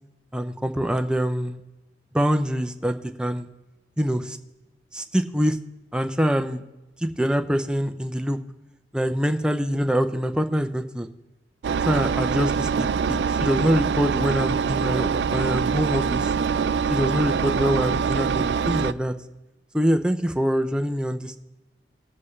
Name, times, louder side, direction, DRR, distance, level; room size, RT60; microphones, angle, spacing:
voice 1, 0.3-1.6 2.1-3.5 4.0-4.4 4.9-5.6 5.9-6.6 7.0-8.4 8.9-11.1 11.8-16.3 16.9-19.1 19.7-21.4, equal, 5° right, 7 dB, 0.5 m, -24 dB
Engine, 11.6-18.9, right 6 dB, 75° right, 0.3 m, -24 dB
20.0 x 7.6 x 3.2 m, 1.0 s
head